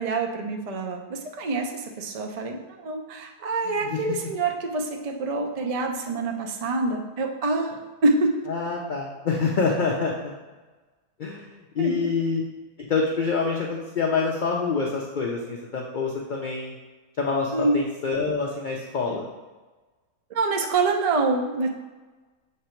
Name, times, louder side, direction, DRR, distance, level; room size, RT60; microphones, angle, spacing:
voice 1, 0.0-7.7 8.0-8.3 11.8-12.1 17.5-17.9 20.3-21.7, right 3 dB, 60° right, 2 dB, 0.3 m, -26 dB
voice 2, 3.6-4.0 8.5-10.3 11.2-11.5 11.8-12.4 12.8-16.7 17.2-19.3, left 4 dB, 60° left, -2 dB, 0.5 m, -26 dB
6.7 x 3.4 x 4.4 m, 1.3 s
omnidirectional pair, 1.6 m